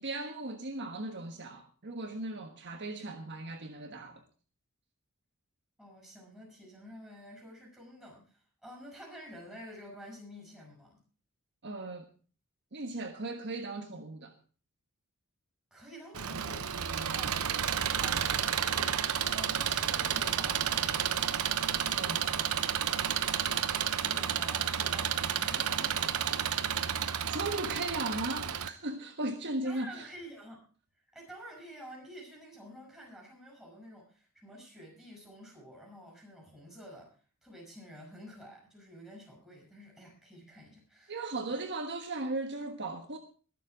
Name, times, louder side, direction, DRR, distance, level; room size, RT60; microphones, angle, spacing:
voice 1, 0.0-4.2 11.6-12.1 12.7-14.3 21.9-22.4 27.3-30.1 41.1-43.2, right 2 dB, 55° right, 1.4 m, -37 dB
voice 2, 5.8-11.0 15.7-19.0 19.3-21.6 24.0-26.2 29.6-30.6 31.1-37.1 37.4-41.2, equal, 5° right, 8.0 m, -50 dB
Engine, 16.1-28.7, right 8 dB, 90° right, 1.0 m, -31 dB
21.5 x 7.3 x 5.0 m
head